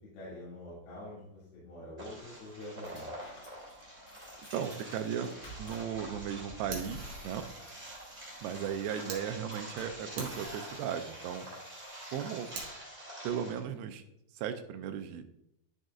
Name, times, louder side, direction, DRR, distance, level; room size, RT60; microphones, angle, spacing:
voice 1, 0.1-3.1, left 1 dB, 70° left, -9 dB, 4.2 m, -46 dB
sound 1, 2.0-13.6, right 1 dB, 15° right, 1.9 m, -46 dB
sound 2, 2.2-10.8, right 1 dB, 40° left, 1.3 m, -53 dB
voice 2, 4.5-5.3 5.6-7.5 8.4-11.5 12.1-12.5 13.2-14.0 14.3-15.2, right 8 dB, 90° right, 8 dB, 2.7 m, -36 dB
Fire, 6.7-9.2 9.7-9.8 10.2-12.7, right 4 dB, 55° right, 2.0 m, -47 dB
12.0 x 6.4 x 2.4 m, 0.80 s
omnidirectional pair, 4.6 m